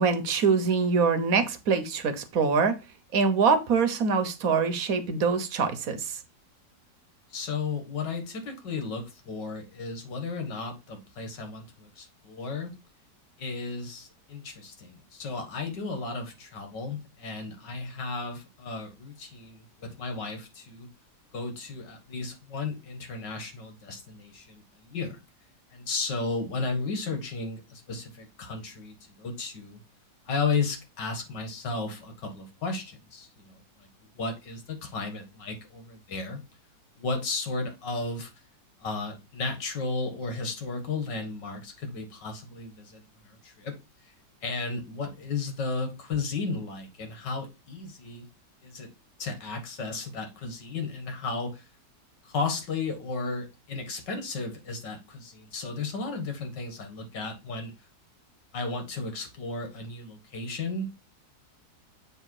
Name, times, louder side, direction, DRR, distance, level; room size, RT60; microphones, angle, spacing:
voice 1, 0.0-2.8 3.1-6.2, right 5 dB, 60° right, 1.3 m, -24 dB
voice 2, 7.3-12.7 13.4-20.9 21.3-25.2 25.7-29.8 30.3-33.9 34.2-36.4 37.0-38.3 38.8-43.7 44.0-44.1 44.4-48.3 48.6-48.9 49.2-51.7 52.2-57.7 58.5-60.9, left 4 dB, 80° left, 2.2 m, -34 dB
8.1 x 3.2 x 4.7 m
omnidirectional pair, 1.9 m